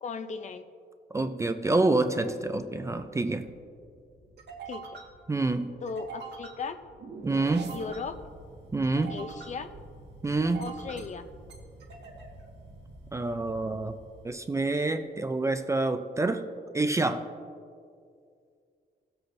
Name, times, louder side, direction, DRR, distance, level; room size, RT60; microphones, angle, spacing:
voice 1, 0.0-0.7 4.7-5.0 5.8-6.8 7.7-8.1 9.1-9.7 10.6-11.2, left 5 dB, 45° left, 9 dB, 0.5 m, -37 dB
voice 2, 1.1-3.5 5.3-5.7 7.2-7.8 8.7-9.2 10.2-10.7 13.1-13.9 14.2-16.5 16.7-17.2, right 2 dB, 15° right, 8 dB, 0.4 m, -27 dB
sound 1, 2.5-14.8, right 4 dB, 85° right, 1.6 m, -46 dB
19.0 x 7.8 x 2.6 m, 2.3 s
wide cardioid pair, 155°, 17 cm